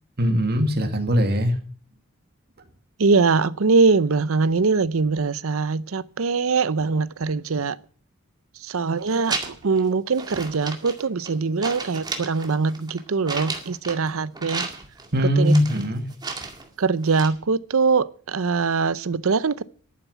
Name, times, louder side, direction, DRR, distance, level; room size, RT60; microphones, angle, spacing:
voice 1, 0.2-1.6 15.1-16.1, equal, 50° right, 2.1 m, -20 dB
voice 2, 3.0-7.8 8.6-14.7 15.4-15.5 16.8-19.6, right 4 dB, 70° right, 0.7 m, -22 dB
sound 1, 9.0-9.8 10.1-11.4 11.6-14.1 14.3-15.1 15.4-16.7 17.0-17.3, right 4 dB, 20° right, 2.1 m, -33 dB
11.5 x 9.4 x 8.1 m
head